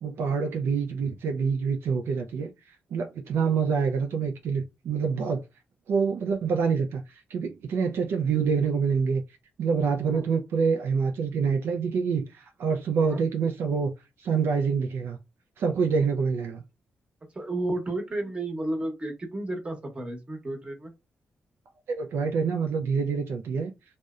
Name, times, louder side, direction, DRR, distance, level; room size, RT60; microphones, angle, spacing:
voice 1, 0.0-2.5 2.9-5.4 5.9-9.2 9.6-13.9 14.2-15.2 15.6-16.6 21.9-23.7, right 5 dB, 75° right, 0.3 m, -26 dB
voice 2, 17.3-20.9, right 1 dB, 30° right, 0.9 m, -32 dB
2.6 x 2.0 x 2.3 m
cardioid pair, 65°, 4 cm